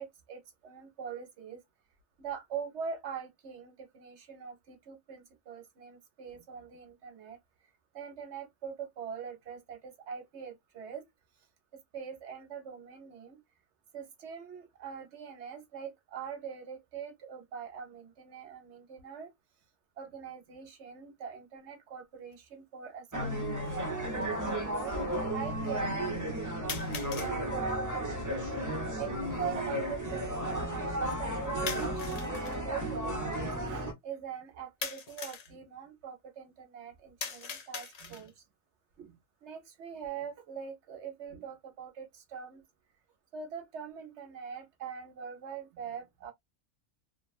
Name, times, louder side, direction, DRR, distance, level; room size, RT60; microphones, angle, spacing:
voice 1, 0.0-1.6 2.2-7.4 7.9-11.0 11.9-13.4 13.9-19.3 20.0-23.9 24.4-25.0 25.3-26.1 27.2-28.0 29.0-38.3 39.0-42.6 43.3-46.3, right 7 dB, 60° right, 1.0 m, -43 dB
sound 1, 22.3-22.4 23.4-23.5 26.7-27.4 31.7-32.6 34.8-35.5 37.2-38.4, left 5 dB, 60° left, 0.4 m, -40 dB
sound 2, 23.1-33.9, right 1 dB, 20° right, 0.7 m, -33 dB
2.8 x 2.3 x 2.4 m
omnidirectional pair, 1.4 m